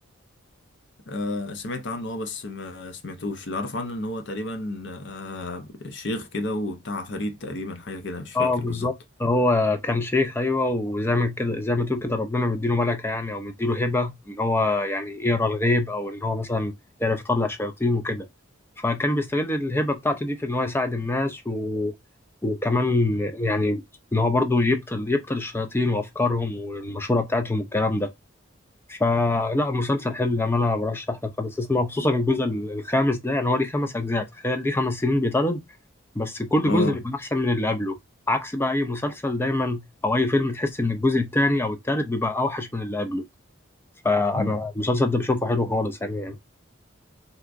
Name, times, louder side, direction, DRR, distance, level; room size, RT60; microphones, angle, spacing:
voice 1, 1.1-8.9 36.6-37.0 44.3-44.6, left 2 dB, 55° left, 0.6 m, -31 dB
voice 2, 8.3-8.9 9.2-16.7 17.0-18.3 18.8-21.9 22.4-23.8 24.1-28.1 28.9-35.6 36.1-38.0 38.3-43.2 44.0-46.5, left 2 dB, 10° left, 0.3 m, -24 dB
3.4 x 2.8 x 2.5 m
head